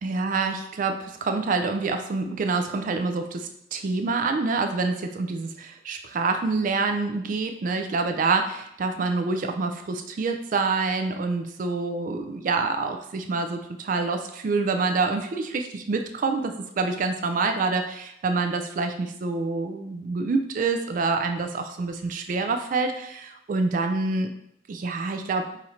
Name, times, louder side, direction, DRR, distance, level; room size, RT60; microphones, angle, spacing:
voice 1, 0.0-24.3 24.7-25.5, right 4 dB, 45° right, 6 dB, 0.3 m, -27 dB
4.2 x 2.5 x 4.2 m, 0.76 s
head